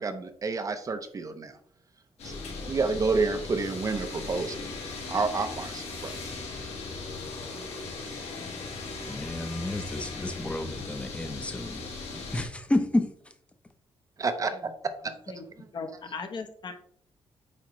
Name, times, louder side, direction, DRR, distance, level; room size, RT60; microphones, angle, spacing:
voice 1, 0.0-1.5 2.2-2.4 2.7-4.6 5.1-6.1 14.2-15.1, right 4 dB, 35° right, 9 dB, 0.7 m, -29 dB
sound 1, 2.2-12.4, left 3 dB, 80° left, 2.2 m, -38 dB
voice 2, 9.1-11.8 12.3-13.1, left 1 dB, 10° left, 8 dB, 0.7 m, -30 dB
voice 3, 15.7-16.7, left 4 dB, 45° left, 6 dB, 0.9 m, -37 dB
8.4 x 4.9 x 3.1 m, 0.63 s
wide cardioid pair, 150°, 11 cm